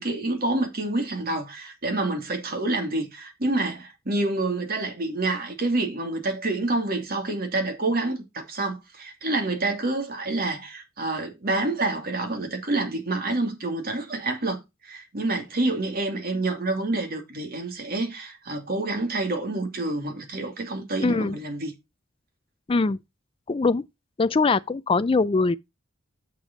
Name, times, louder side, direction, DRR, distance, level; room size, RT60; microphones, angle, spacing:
voice 1, 0.0-21.7, right 2 dB, 45° right, 2.7 m, -28 dB
voice 2, 21.0-21.4 22.7-23.0 23.5-23.8 24.2-25.6, left 3 dB, 25° left, 0.4 m, -22 dB
7.2 x 7.1 x 3.9 m
head